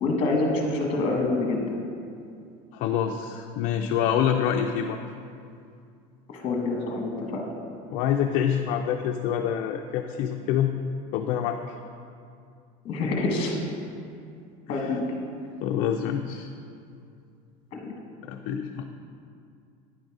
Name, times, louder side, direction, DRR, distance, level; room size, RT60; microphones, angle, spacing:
voice 1, 0.0-1.8 6.3-7.5 12.8-13.6 14.7-15.0 17.7-17.9, left 2 dB, 35° left, 1 dB, 1.2 m, -26 dB
voice 2, 2.7-5.0 7.9-10.7 11.1-11.8 14.7-14.9 15.6-16.5 18.3-18.8, left 9 dB, 50° left, 4 dB, 0.4 m, -26 dB
9.7 x 3.9 x 4.7 m, 2.4 s
cardioid pair, 155°, 17 cm